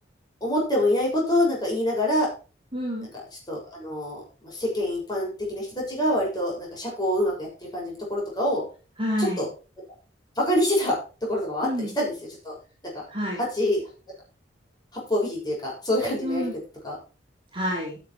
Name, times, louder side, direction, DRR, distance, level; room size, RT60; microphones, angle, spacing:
voice 1, 0.4-2.3 3.5-7.5 7.7-8.6 9.4-9.5 10.4-11.0 11.3-12.1 12.4-12.5 12.8-12.9 13.4-13.8 14.9-16.5 16.8-17.0, left 1 dB, 20° left, -3 dB, 6.9 m, -25 dB
voice 2, 2.7-3.1 9.0-9.4 11.6-11.9 13.1-13.4 16.2-16.5 17.5-18.0, equal, 30° right, -1 dB, 3.8 m, -28 dB
12.5 x 7.3 x 4.6 m, 0.34 s
head